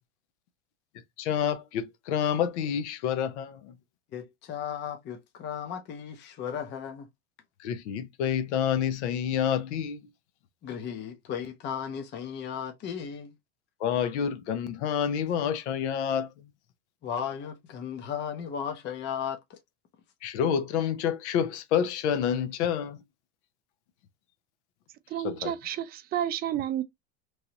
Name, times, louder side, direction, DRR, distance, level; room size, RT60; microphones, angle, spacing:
voice 1, 1.2-3.7 7.6-10.0 13.8-16.5 20.2-23.0 25.2-25.5, left 8 dB, 80° left, 0.8 m, -28 dB
voice 2, 4.1-7.1 10.6-13.3 17.0-19.6, left 8 dB, 30° left, 0.7 m, -35 dB
voice 3, 25.1-26.8, right 11 dB, 30° right, 0.4 m, -31 dB
3.1 x 2.6 x 2.9 m
supercardioid pair, 120°, 34 cm